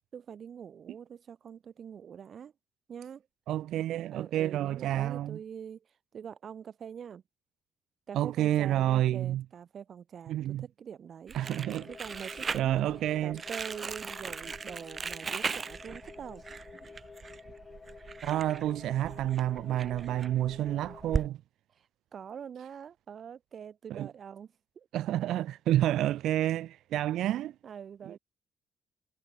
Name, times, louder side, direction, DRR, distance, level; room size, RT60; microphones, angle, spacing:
voice 1, 0.1-2.5 2.9-3.3 4.1-5.9 6.1-7.2 8.1-11.4 11.9-12.8 13.2-16.4 21.8-21.9 22.1-24.9 27.6-28.2, right 8 dB, 55° right, 2.0 m, -44 dB
voice 2, 3.5-5.4 8.1-9.4 10.3-10.7 11.3-11.9 12.5-13.4 18.2-21.4 23.9-24.1 24.9-27.5 28.0-28.1, right 13 dB, 80° right, 1.0 m, -29 dB
Crumpling crinkling, 11.3-21.3, right 5 dB, 40° right, 0.7 m, -38 dB
sound 1, 11.4-21.2, left 4 dB, 35° left, 7.0 m, -50 dB
cardioid pair, 90°, 0 cm